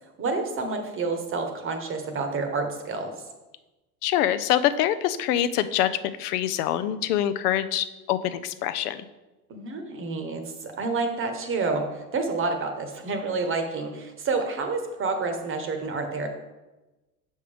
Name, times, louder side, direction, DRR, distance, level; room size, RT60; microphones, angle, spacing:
voice 1, 0.2-3.1 9.5-16.3, right 3 dB, 30° right, 6 dB, 0.9 m, -29 dB
voice 2, 4.0-5.9 6.2-9.0, left 11 dB, 85° left, 13 dB, 0.6 m, -25 dB
6.3 x 5.4 x 3.3 m, 1.1 s
supercardioid pair, 110°, 45 cm